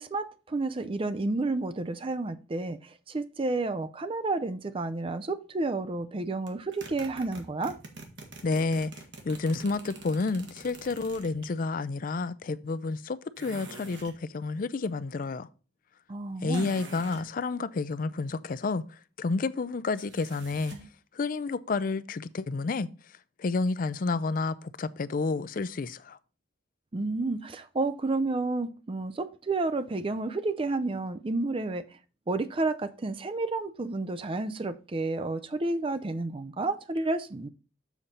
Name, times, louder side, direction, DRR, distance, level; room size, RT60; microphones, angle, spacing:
voice 1, 0.0-2.8 3.1-7.8 16.1-16.7 26.9-32.0 32.3-37.5, right 3 dB, 30° right, 0.5 m, -31 dB
sound 1, 6.5-11.5 13.4-14.2 16.5-17.3 20.0-20.9, right 3 dB, 75° right, 1.4 m, -46 dB
voice 2, 8.4-8.9 9.2-15.5 16.4-18.8 19.2-20.8 21.1-22.9 23.4-26.2, left 3 dB, 50° left, 0.4 m, -30 dB
7.2 x 4.2 x 5.2 m
head